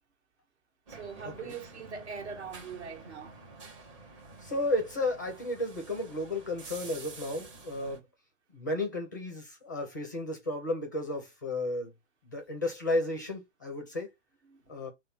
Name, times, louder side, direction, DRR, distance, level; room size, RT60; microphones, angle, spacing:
sound 1, 0.9-8.0, right 3 dB, 25° right, 1.2 m, -49 dB
voice 1, 0.9-3.4 14.4-14.8, right 5 dB, 60° right, 1.6 m, -42 dB
voice 2, 4.4-8.0 8.5-11.9 12.2-14.1 14.7-14.9, left 1 dB, 15° left, 0.5 m, -33 dB
5.3 x 2.2 x 4.3 m
hypercardioid pair, 180°, 37 cm